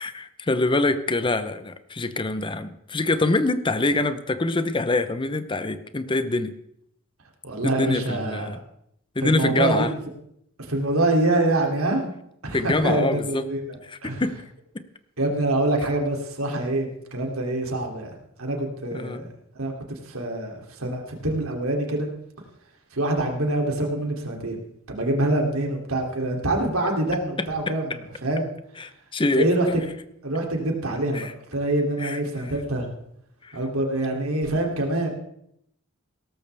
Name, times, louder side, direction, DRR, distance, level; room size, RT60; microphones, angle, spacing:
voice 1, 0.0-6.5 7.6-8.6 9.2-9.9 12.5-13.4 13.9-14.4 18.9-19.2 28.8-29.5 31.1-31.3 32.0-32.2 33.4-33.6, left 2 dB, 25° left, 11 dB, 0.7 m, -25 dB
voice 2, 7.4-8.5 9.2-9.9 10.6-12.1 12.4-13.8 14.0-14.2 15.2-18.1 18.4-19.2 19.5-22.1 22.9-24.6 24.9-28.5 29.3-29.8 30.2-32.9 33.5-35.1, right 2 dB, 85° right, 1 dB, 2.9 m, -25 dB
17.5 x 13.5 x 3.4 m, 0.75 s
head